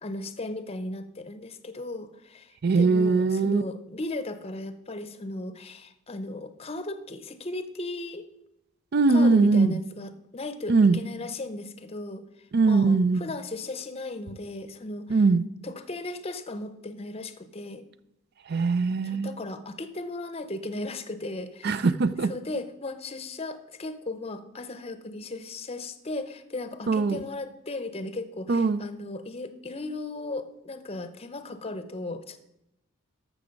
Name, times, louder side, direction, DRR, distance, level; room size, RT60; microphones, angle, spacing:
voice 1, 0.0-8.2 9.1-12.2 12.7-15.2 15.6-17.8 19.0-21.9 22.2-32.4, left 2 dB, 30° left, 11 dB, 0.7 m, -36 dB
voice 2, 2.6-3.6 8.9-9.8 10.7-11.0 12.5-13.2 15.1-15.4 18.5-19.3 21.6-22.3 26.9-27.2 28.5-28.8, right 4 dB, 50° right, 15 dB, 0.4 m, -21 dB
13.5 x 6.1 x 5.2 m, 0.85 s
head